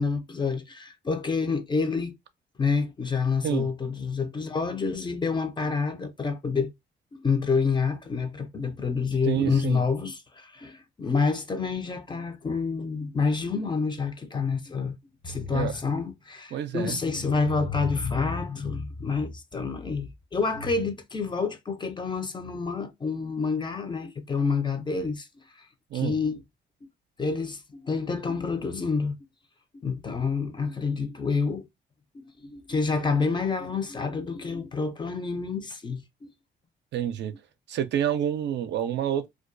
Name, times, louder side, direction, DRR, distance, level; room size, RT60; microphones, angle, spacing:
voice 1, 0.0-2.1 2.6-6.7 7.1-15.0 15.2-25.3 25.6-25.7 25.9-26.4 27.2-29.2 29.8-31.7 32.4-36.3, left 4 dB, 25° left, 0.4 m, -28 dB
voice 2, 9.2-9.9 15.5-15.8 16.5-17.0 25.9-26.2 36.9-37.3 37.7-39.3, right 10 dB, 60° right, 0.4 m, -28 dB
2.3 x 2.1 x 2.5 m
cardioid pair, 90°, 20 cm